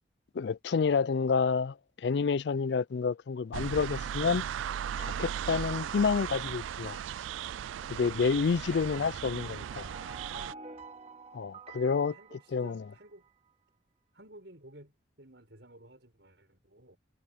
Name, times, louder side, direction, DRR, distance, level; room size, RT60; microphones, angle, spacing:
voice 1, 0.3-4.4 5.0-7.0 7.9-9.9 11.3-12.1 12.5-12.8, left 5 dB, 60° left, 0.4 m, -29 dB
sound 1, 3.5-10.5, right 9 dB, 85° right, 0.3 m, -37 dB
sound 2, 9.3-13.3, right 3 dB, 30° right, 2.3 m, -49 dB
voice 2, 12.0-13.3 14.1-17.0, right 1 dB, 65° right, 7.2 m, -54 dB
head